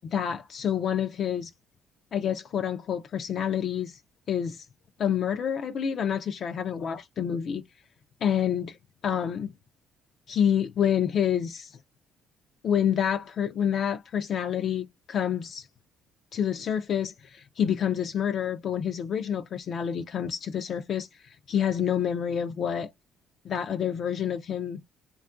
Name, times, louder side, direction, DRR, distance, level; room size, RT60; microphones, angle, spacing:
voice 1, 0.0-1.5 2.1-4.0 4.3-4.7 5.0-7.6 8.2-8.8 9.0-9.5 10.3-11.8 12.6-15.7 16.3-22.9 23.4-24.8, left 8 dB, 50° left, 0.4 m, -28 dB
3.5 x 2.3 x 2.4 m
cardioid pair, 115°, 0 cm